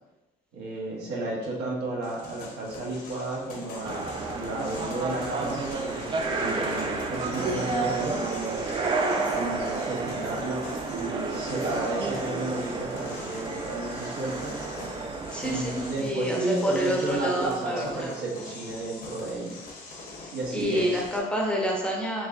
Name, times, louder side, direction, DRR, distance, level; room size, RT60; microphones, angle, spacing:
voice 1, 0.5-5.7 6.3-8.3 9.3-14.6 15.4-19.6 20.3-21.0, right 2 dB, 75° right, -3 dB, 1.0 m, -32 dB
sound 1, 2.0-21.2, left 3 dB, 60° left, 0.9 m, -43 dB
sound 2, 3.8-16.0, right 3 dB, 30° right, 0.4 m, -31 dB
voice 2, 15.3-18.1 20.5-22.3, equal, 5° left, -2 dB, 0.7 m, -28 dB
4.4 x 2.9 x 2.5 m, 1.1 s
cardioid pair, 110°, 17 cm